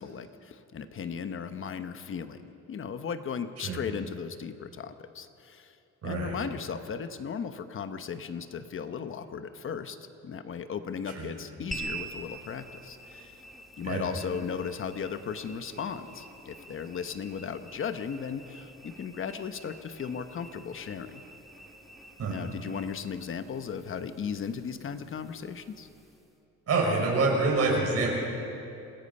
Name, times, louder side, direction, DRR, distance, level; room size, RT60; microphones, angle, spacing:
voice 1, 0.0-5.8 6.0-10.0 10.2-13.3 13.8-21.2 22.3-25.9, left 6 dB, 40° left, 10 dB, 1.1 m, -36 dB
voice 2, 6.0-6.3 11.1-11.3 13.8-14.1 22.2-22.3 26.7-28.1, right 3 dB, 50° right, -1 dB, 5.7 m, -26 dB
sound 1, 11.7-26.3, right 2 dB, ahead, 1.8 m, -47 dB
27.5 x 18.5 x 5.5 m, 2.8 s
cardioid pair, 140°, 31 cm